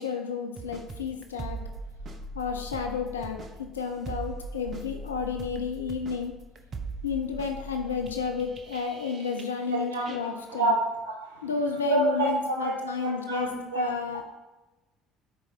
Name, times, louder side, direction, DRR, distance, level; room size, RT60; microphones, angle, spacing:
voice 1, 0.0-1.6 2.3-6.4 7.0-10.7 11.4-13.5 13.7-14.2, left 5 dB, 80° left, 4 dB, 0.6 m, -31 dB
sound 1, 0.6-9.8 10.1-10.2, right 2 dB, 40° right, 1.0 m, -40 dB
voice 2, 9.7-10.8 11.0-11.5 11.9-13.9, right 2 dB, 75° right, 0 dB, 1.7 m, -28 dB
8.3 x 4.6 x 4.5 m, 1.1 s
figure-of-eight pair, 55°, 0 cm